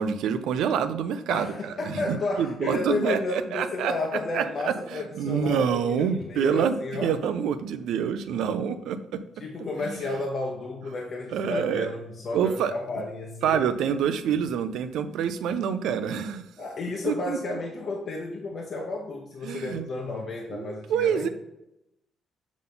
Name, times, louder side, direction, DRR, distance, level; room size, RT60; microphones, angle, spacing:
voice 1, 0.0-3.9 4.3-6.7 7.0-9.2 9.8-10.0 11.3-11.9 12.3-12.7 13.4-16.4 17.0-17.4 19.4-19.9 20.5-21.3, right 8 dB, 85° right, 11 dB, 0.5 m, -27 dB
voice 2, 1.3-7.1 9.4-13.7 16.6-21.3, left 2 dB, 55° left, -1 dB, 1.0 m, -32 dB
7.2 x 3.9 x 3.8 m, 0.87 s
cardioid pair, 90°, 0 cm